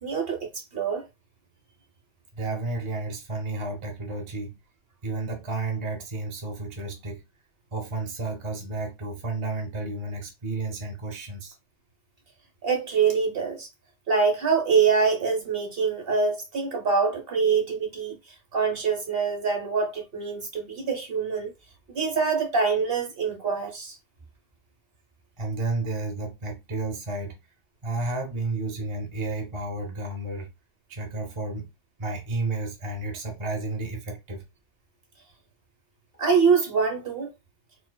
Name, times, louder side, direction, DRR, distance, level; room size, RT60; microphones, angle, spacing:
voice 1, 0.0-1.0 12.6-13.7 14.1-18.2 18.5-21.5 21.9-24.0 36.2-37.3, right 5 dB, 55° right, 1.2 m, -24 dB
voice 2, 2.3-4.6 5.0-7.2 7.7-11.5 25.4-27.4 27.8-30.5 30.9-31.7 32.0-34.4, right 2 dB, 30° right, 0.7 m, -32 dB
4.3 x 2.2 x 2.2 m
omnidirectional pair, 1.3 m